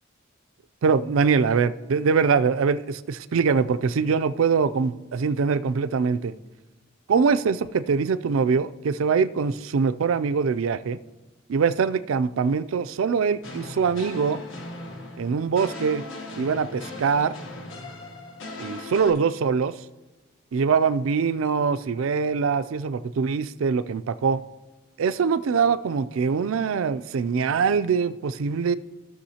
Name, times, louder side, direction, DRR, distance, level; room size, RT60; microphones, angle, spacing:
voice 1, 0.8-6.3 7.1-11.0 11.5-14.4 15.2-16.0 16.4-17.3 18.6-19.7 20.5-24.4 25.0-28.8, right 5 dB, 80° right, 14 dB, 0.4 m, -23 dB
sound 1, 13.4-19.1, left 2 dB, 70° left, 1.3 m, -38 dB
16.0 x 6.2 x 2.8 m, 1.2 s
head